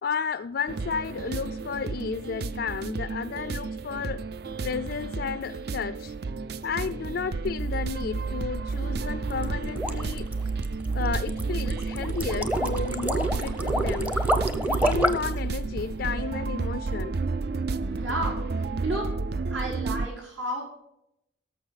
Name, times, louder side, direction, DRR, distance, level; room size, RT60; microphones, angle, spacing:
voice 1, 0.0-4.3 4.6-6.1 6.6-10.4 10.9-14.2 14.7-17.2, left 5 dB, 55° left, 0.3 m, -32 dB
sound 1, 0.7-20.1, right 4 dB, 55° right, 0.4 m, -31 dB
sound 2, 9.3-15.4, right 1 dB, 10° right, 0.6 m, -28 dB
voice 2, 17.9-19.1 19.5-20.6, right 1 dB, 80° right, 5.1 m, -32 dB
17.0 x 7.0 x 4.1 m
head